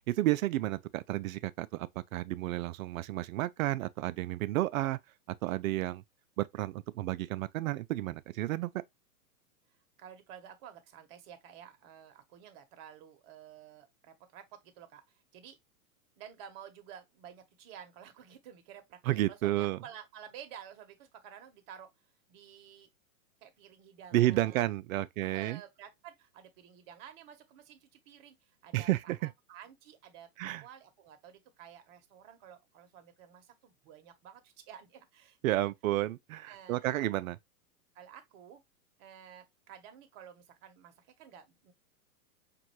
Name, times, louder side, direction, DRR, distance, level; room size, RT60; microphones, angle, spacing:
voice 1, 0.0-5.0 5.4-6.0 6.4-8.7 19.1-19.8 24.1-25.6 28.7-29.3 30.4-30.6 35.4-37.4, right 15 dB, 60° right, 0.5 m, -31 dB
voice 2, 9.7-15.6 16.2-19.0 19.3-21.9 22.3-22.9 23.4-24.6 25.2-30.3 30.6-35.6 36.4-37.2 37.9-38.6 39.0-41.7, right 9 dB, 40° right, 1.0 m, -52 dB
5.2 x 2.6 x 3.0 m
hypercardioid pair, 125°, 46 cm